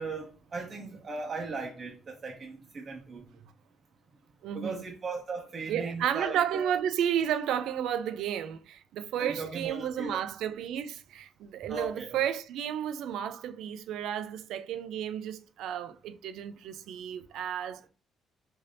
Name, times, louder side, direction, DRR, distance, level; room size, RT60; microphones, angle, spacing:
voice 1, 0.0-3.2 4.5-6.8 9.2-10.2 11.6-12.2, right 3 dB, 35° right, 0.6 m, -38 dB
voice 2, 4.4-4.8 5.7-17.9, right 9 dB, 75° right, 0.3 m, -32 dB
3.3 x 2.7 x 2.6 m
cardioid pair, 100°, 0 cm